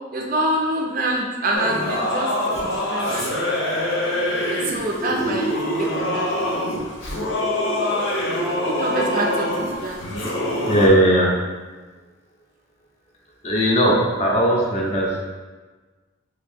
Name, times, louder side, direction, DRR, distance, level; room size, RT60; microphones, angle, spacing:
voice 1, 0.1-2.3 2.7-3.4 4.5-6.3 8.6-10.0, right 1 dB, 40° right, -1 dB, 0.4 m, -26 dB
Singing / Musical instrument, 1.5-10.9, left 1 dB, 70° left, 0.7 m, -24 dB
voice 2, 10.6-11.4 13.4-15.2, equal, 30° left, -3 dB, 0.5 m, -18 dB
2.8 x 2.6 x 3.5 m, 1.3 s
head